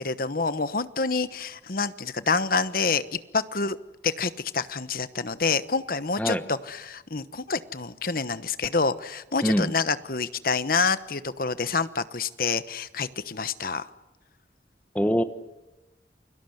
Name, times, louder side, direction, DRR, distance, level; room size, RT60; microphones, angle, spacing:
voice 1, 0.0-3.8 4.0-13.9, left 4 dB, 50° left, 14 dB, 1.1 m, -27 dB
voice 2, 6.2-6.4 9.4-9.7 14.9-15.2, equal, 10° left, 10 dB, 1.1 m, -23 dB
29.0 x 23.0 x 8.0 m, 1.0 s
head